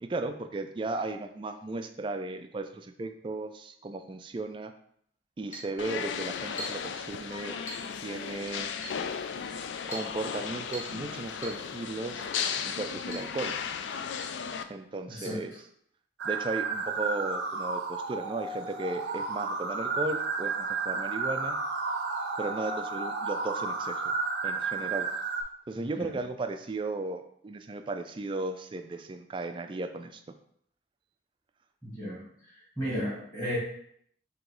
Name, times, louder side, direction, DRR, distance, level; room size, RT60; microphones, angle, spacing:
voice 1, 0.0-4.7 5.4-7.6 8.0-8.7 9.9-12.3 12.7-13.6 14.7-15.5 16.2-21.6 22.4-24.0 24.4-25.1 25.7-30.2, right 2 dB, 30° right, 7 dB, 0.3 m, -35 dB
Chink clink, 5.5-5.7 6.6-6.9 7.7-7.9 8.8-9.0 9.9-10.1 10.7-11.0 11.4-11.6 12.4-12.6 13.1-13.3 13.6-13.7 14.2-14.4 15.2-15.3, equal, 45° left, 1.2 m, -41 dB
sound 1, 5.8-14.6, left 7 dB, 85° left, 0.3 m, -35 dB
sound 2, 16.2-25.4, right 4 dB, 80° right, 0.6 m, -32 dB
voice 2, 31.8-32.2 32.8-33.6, equal, 10° left, -13 dB, 1.8 m, -34 dB
3.8 x 3.0 x 4.7 m, 0.68 s
head